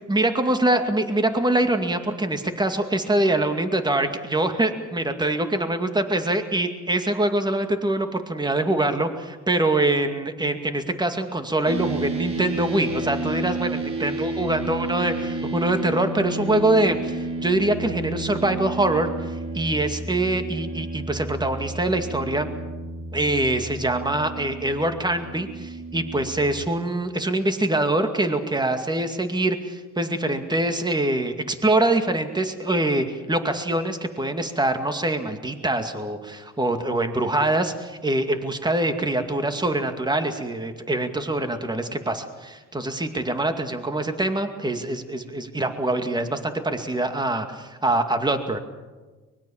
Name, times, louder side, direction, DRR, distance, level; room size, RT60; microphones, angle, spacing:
voice 1, 0.1-19.1 19.5-22.5 23.1-48.6, right 2 dB, 15° right, 7 dB, 2.3 m, -24 dB
sound 1, 11.6-26.7, right 2 dB, 50° right, 4.2 m, -31 dB
24.0 x 21.0 x 7.3 m, 1.3 s
cardioid pair, 90°, 30 cm